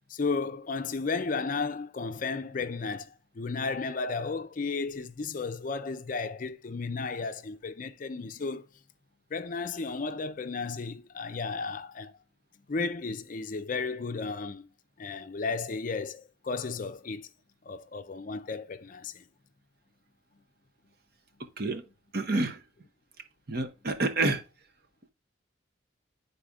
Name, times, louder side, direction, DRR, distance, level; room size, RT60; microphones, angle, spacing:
voice 1, 0.1-8.7 9.3-12.1 12.7-14.7 15.0-17.3 17.7-19.3, left 4 dB, 40° left, 0.4 m, -34 dB
voice 2, 22.1-22.6 23.5-24.4, right 2 dB, 50° right, 0.8 m, -28 dB
11.0 x 4.1 x 2.4 m
head